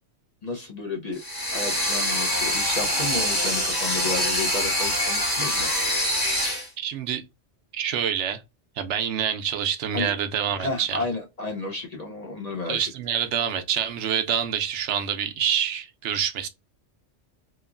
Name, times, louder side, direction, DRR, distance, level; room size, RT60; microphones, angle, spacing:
voice 1, 0.4-1.2 1.5-5.7 9.9-10.1 10.6-12.8, left 3 dB, 45° left, 0.6 m, -32 dB
sound 1, 1.2-6.7, equal, 20° left, 1.0 m, -25 dB
voice 2, 6.8-7.2 7.7-8.4 8.8-11.0 12.7-16.5, right 8 dB, 75° right, 0.9 m, -26 dB
2.9 x 2.4 x 2.3 m
omnidirectional pair, 1.2 m